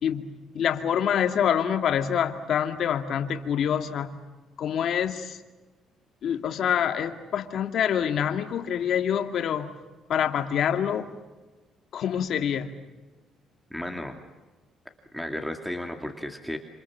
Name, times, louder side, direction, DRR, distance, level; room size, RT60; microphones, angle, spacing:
voice 1, 0.0-4.2 4.6-5.4 6.2-9.7 10.1-11.1 11.9-12.7, left 8 dB, 60° left, 5 dB, 2.3 m, -26 dB
voice 2, 13.7-14.2 15.1-16.6, left 1 dB, ahead, 2 dB, 2.5 m, -33 dB
27.5 x 27.5 x 7.4 m, 1.2 s
cardioid pair, 105°, 0 cm